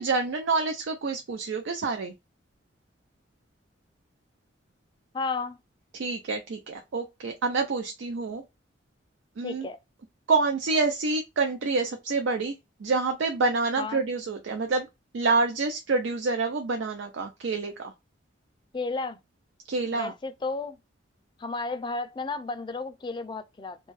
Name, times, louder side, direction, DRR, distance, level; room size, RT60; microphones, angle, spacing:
voice 1, 0.0-2.1 5.9-8.4 9.4-9.7 10.3-12.5 12.8-14.9 15.1-17.7 19.7-20.1, right 3 dB, 85° right, 0.4 m, -27 dB
voice 2, 5.1-5.6 9.4-9.8 13.8-14.0 18.7-19.2 19.9-20.8 21.4-23.9, left 3 dB, 25° left, 0.3 m, -33 dB
2.5 x 2.3 x 3.1 m
head